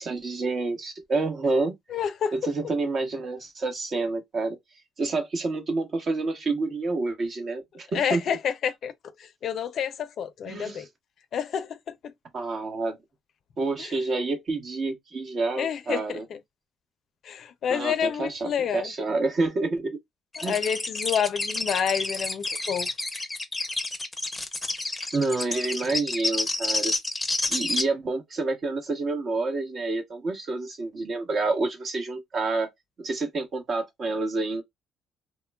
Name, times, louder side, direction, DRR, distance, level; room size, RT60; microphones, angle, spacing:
voice 1, 0.0-1.7 2.3-4.6 5.0-8.2 10.4-10.9 12.3-13.0 13.6-16.3 17.7-20.0 20.4-20.6 25.1-26.9 27.5-32.7 33.0-34.6, right 3 dB, 45° right, 1.0 m, -28 dB
voice 2, 1.9-2.3 7.9-8.9 9.2-10.9 11.3-11.8 12.0-12.1 15.6-16.4 17.2-18.9 20.4-22.9, left 8 dB, 60° left, 0.4 m, -28 dB
sound 1, 20.3-27.8, left 2 dB, 15° left, 0.6 m, -29 dB
3.1 x 2.2 x 2.2 m
cardioid pair, 110°, 0 cm